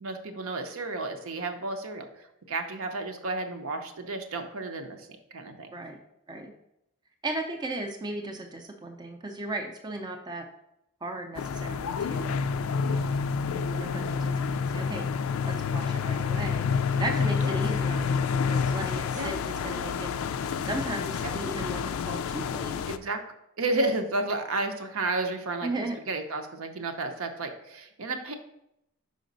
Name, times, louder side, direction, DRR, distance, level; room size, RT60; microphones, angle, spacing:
voice 1, 0.0-5.7 17.0-17.1 17.4-17.5 19.1-19.3 21.2-21.3 22.9-23.2 23.6-25.7 26.1-28.3, right 2 dB, 65° right, 6 dB, 0.7 m, -32 dB
voice 2, 7.2-10.5 11.0-12.5 12.9-15.1 15.5-16.7 17.0-20.1 20.6-22.8 25.6-26.0, right 2 dB, 20° right, 3 dB, 0.5 m, -36 dB
sound 1, 11.3-23.0, left 5 dB, 65° left, 0.3 m, -28 dB
5.1 x 5.0 x 3.9 m, 0.81 s
head